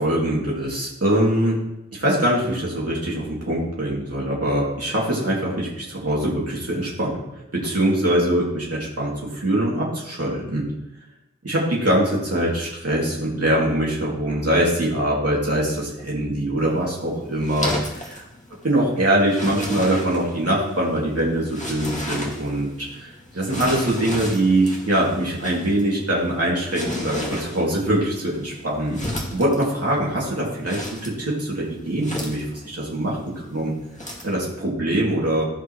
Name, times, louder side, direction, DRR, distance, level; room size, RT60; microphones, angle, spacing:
voice 1, 0.0-1.6 1.9-7.2 7.5-10.6 11.4-18.2 18.6-29.0 29.3-33.7 34.2-35.5, right 1 dB, 50° right, -5 dB, 2.7 m, -23 dB
sound 1, 16.6-34.4, left 1 dB, 25° left, 2.0 m, -35 dB
15.5 x 5.5 x 3.2 m, 0.91 s
wide cardioid pair, 45°, 30 cm